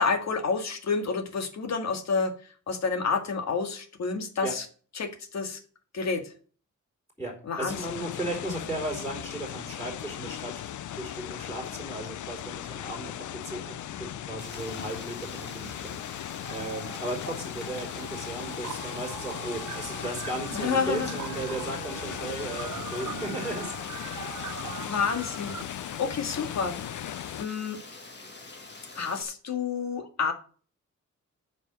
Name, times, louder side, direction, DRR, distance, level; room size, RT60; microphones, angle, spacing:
voice 1, 0.0-2.3 2.7-4.6 5.0-5.6 5.9-6.3 7.5-8.0 20.6-21.1 24.0-24.2 24.9-27.1 27.4-27.8 29.0-30.3, left 5 dB, 65° left, 6 dB, 1.9 m, -29 dB
voice 2, 7.2-24.3 25.5-25.6, right 1 dB, 10° left, -3 dB, 4.3 m, -36 dB
sound 1, 7.7-27.5, left 11 dB, 80° left, 0.5 m, -38 dB
Rain, 14.4-29.2, left 3 dB, 35° left, 2.1 m, -46 dB
sound 2, 16.4-17.3 17.6-25.6, right 9 dB, 80° right, 0.9 m, -41 dB
9.2 x 5.5 x 7.4 m, 0.41 s
wide cardioid pair, 140°, 30 cm